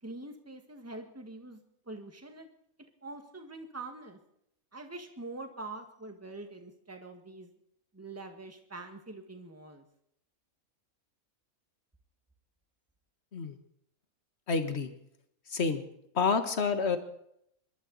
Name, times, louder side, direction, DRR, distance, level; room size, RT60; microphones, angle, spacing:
voice 1, 0.0-2.5 3.0-4.2 4.7-7.5 7.9-9.8, right 2 dB, 10° right, 5 dB, 1.7 m, -44 dB
voice 2, 14.5-14.9 15.5-15.8 16.1-17.0, left 5 dB, 50° left, 9 dB, 1.6 m, -28 dB
26.0 x 12.5 x 4.1 m, 0.74 s
omnidirectional pair, 1.5 m